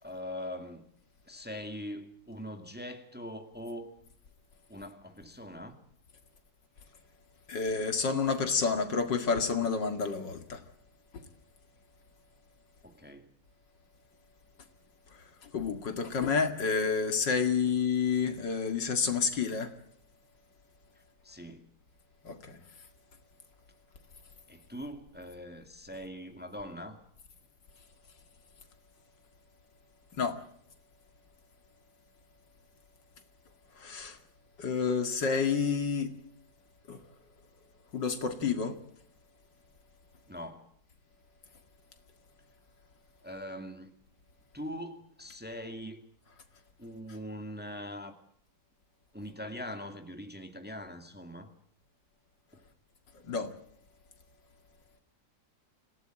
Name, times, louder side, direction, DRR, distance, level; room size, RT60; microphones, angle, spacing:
voice 1, 0.0-0.9 1.3-3.9 4.7-5.8 12.8-13.3 17.7-17.8 20.9-21.7 24.5-27.0 40.3-40.7 43.2-43.9 44.5-46.1 46.8-48.1 49.1-51.5 52.5-52.6, equal, 5° right, 2.0 m, -42 dB
voice 2, 7.5-10.6 11.1-11.3 15.1-19.7 22.2-22.6 30.1-30.4 33.7-34.2 34.6-36.1 36.9-37.0 37.9-38.8 53.1-53.5, left 5 dB, 70° left, 2.7 m, -29 dB
26.0 x 17.0 x 9.0 m
omnidirectional pair, 2.0 m